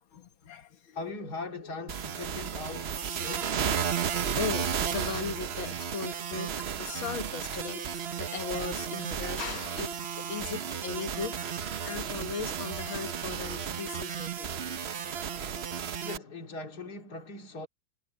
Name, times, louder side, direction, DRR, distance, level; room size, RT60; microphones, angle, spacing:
voice 1, 0.1-1.0 4.3-14.5, left 5 dB, 90° left, 2.3 m, -38 dB
voice 2, 0.9-3.0 3.2-3.5 16.0-17.7, left 3 dB, 50° left, 2.9 m, -40 dB
sound 1, 1.9-16.2, right 7 dB, 55° right, 0.7 m, -33 dB
omnidirectional pair, 2.1 m